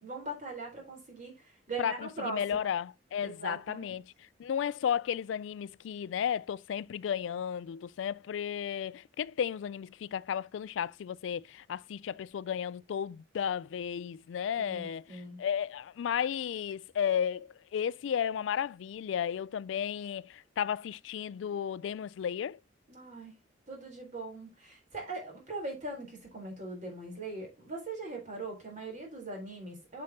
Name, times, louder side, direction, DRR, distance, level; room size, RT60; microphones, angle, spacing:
voice 1, 0.0-2.4 3.2-3.9 14.6-15.4 22.9-23.4 23.7-30.0, right 2 dB, 40° right, 3.8 m, -41 dB
voice 2, 1.8-4.0 4.4-22.6, left 8 dB, 80° left, 0.3 m, -33 dB
7.6 x 7.1 x 2.8 m
head